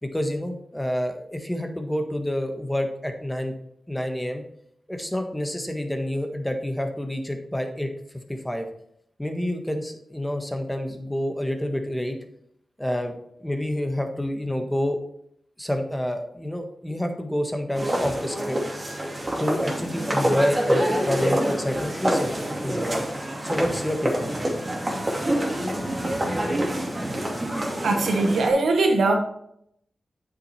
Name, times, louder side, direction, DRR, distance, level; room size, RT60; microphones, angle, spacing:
voice 1, 0.0-3.5 3.9-4.4 4.9-7.9 8.3-8.7 9.2-12.2 12.8-13.1 13.4-15.0 15.6-18.6 19.4-23.0 23.4-24.5, left 1 dB, 10° left, 5 dB, 1.5 m, -28 dB
sound 1, 17.7-28.5, right 1 dB, 30° right, 2.6 m, -26 dB
voice 2, 27.8-29.2, right 3 dB, 85° right, 4 dB, 1.3 m, -20 dB
8.1 x 6.6 x 4.3 m, 0.71 s
cardioid pair, 50°, 0 cm